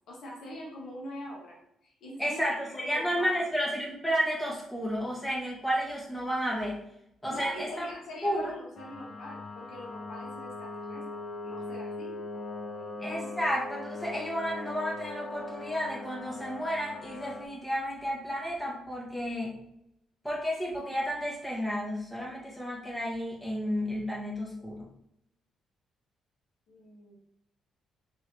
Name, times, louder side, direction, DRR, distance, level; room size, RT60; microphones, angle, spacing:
voice 1, 0.1-2.4 2.7-3.5 7.3-13.3 26.7-27.2, equal, 70° left, -3 dB, 1.4 m, -44 dB
voice 2, 2.2-6.8 7.2-7.9 8.2-8.6 13.0-19.6 20.2-24.9, equal, 10° left, -4 dB, 1.6 m, -32 dB
sound 1, 8.8-17.5, left 3 dB, 25° left, 0.7 m, -40 dB
4.6 x 3.1 x 3.3 m, 0.76 s
cardioid pair, 90°, 0 cm